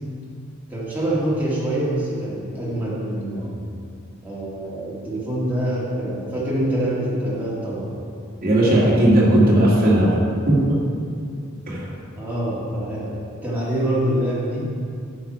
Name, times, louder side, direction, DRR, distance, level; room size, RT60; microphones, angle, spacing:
voice 1, 0.7-3.6 4.2-8.0 12.1-14.7, right 1 dB, 10° right, -8 dB, 2.2 m, -25 dB
voice 2, 8.4-10.2 10.5-10.8 11.7-11.9, right 1 dB, 45° right, -6 dB, 2.2 m, -16 dB
9.7 x 6.2 x 4.6 m, 2.3 s
head